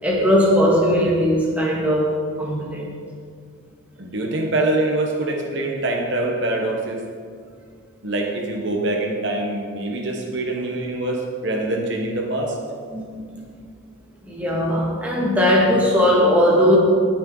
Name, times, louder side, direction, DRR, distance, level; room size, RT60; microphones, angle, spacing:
voice 1, 0.0-2.9 12.9-13.1 13.3-13.4 14.2-16.8, equal, 5° right, -4 dB, 1.9 m, -18 dB
voice 2, 4.0-7.0 8.0-12.6, right 2 dB, 55° right, 1 dB, 1.2 m, -24 dB
18.5 x 6.5 x 3.9 m, 2.1 s
head